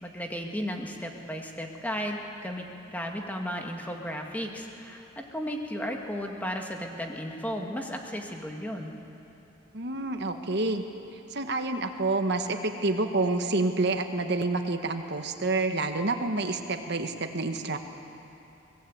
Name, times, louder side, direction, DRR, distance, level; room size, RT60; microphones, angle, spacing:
voice 1, 0.0-8.9, equal, 10° left, 1 dB, 1.9 m, -34 dB
voice 2, 9.7-10.8 11.3-17.8, right 2 dB, 55° right, 6 dB, 1.5 m, -28 dB
23.5 x 19.0 x 8.8 m, 2.9 s
head